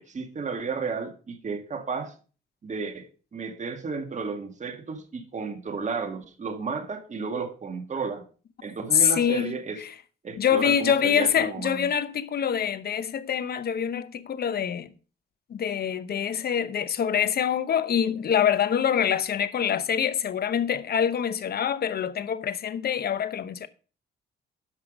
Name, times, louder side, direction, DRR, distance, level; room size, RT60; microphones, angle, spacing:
voice 1, 0.0-2.1 2.6-8.3 8.6-9.8 10.2-11.9, right 4 dB, 35° right, 1.8 m, -33 dB
voice 2, 8.9-9.5 9.8-9.9 10.4-14.9 15.5-23.7, left 8 dB, 50° left, 0.9 m, -25 dB
11.0 x 5.9 x 5.1 m
cardioid pair, 90°, 20 cm